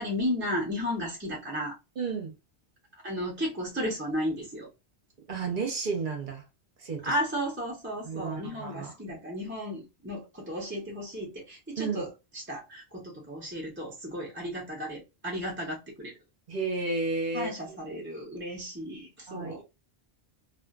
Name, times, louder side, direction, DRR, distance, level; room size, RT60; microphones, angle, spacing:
voice 1, 0.0-1.7 3.0-4.7 7.0-12.1 12.3-16.1 17.3-19.6, equal, 15° right, 0.6 m, -34 dB
voice 2, 2.0-2.3 5.3-6.4 6.8-7.1 8.0-8.9 11.8-12.0 16.5-17.5 19.3-19.6, right 4 dB, 50° right, 0.9 m, -32 dB
2.5 x 2.4 x 2.3 m
omnidirectional pair, 1.1 m